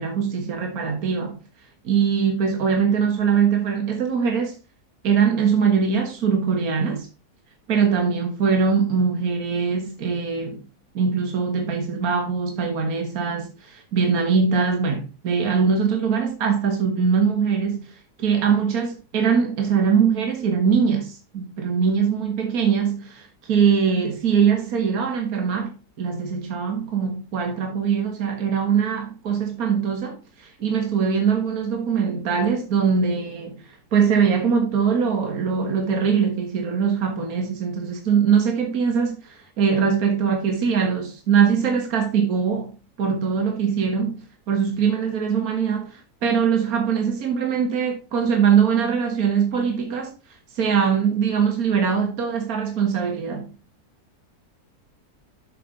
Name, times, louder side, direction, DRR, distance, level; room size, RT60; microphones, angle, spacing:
voice 1, 0.0-1.4 1.8-4.6 5.0-7.1 7.7-10.6 10.9-25.7 26.0-50.1 50.5-53.5, right 6 dB, 65° right, 1.9 m, -22 dB
7.1 x 6.8 x 3.9 m
omnidirectional pair, 1.7 m